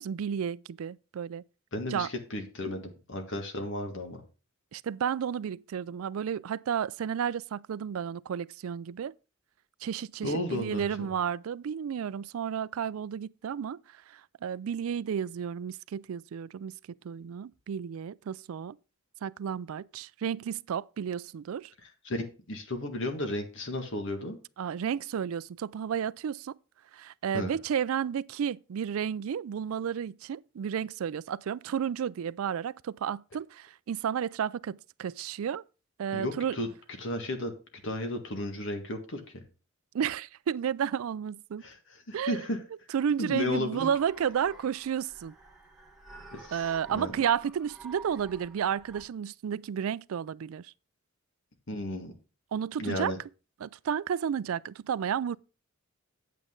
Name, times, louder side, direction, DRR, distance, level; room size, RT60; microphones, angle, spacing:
voice 1, 0.0-1.4 1.9-2.1 4.7-9.1 9.8-16.8 17.0-18.8 19.2-21.7 24.6-26.5 26.9-35.6 36.0-36.6 39.9-41.6 42.1-42.4 42.9-45.3 46.5-50.7 52.5-53.1 53.6-55.4, right 8 dB, 75° right, 0.4 m, -32 dB
voice 2, 1.7-4.2 10.2-11.1 21.8-24.4 27.3-27.6 36.1-36.7 37.0-37.5 37.8-39.4 41.6-42.6 43.2-43.9 46.3-47.1 51.7-52.1 52.8-53.2, left 1 dB, 65° left, 1.9 m, -34 dB
sound 1, 43.7-49.0, right 3 dB, ahead, 2.5 m, -50 dB
9.0 x 8.4 x 3.7 m
head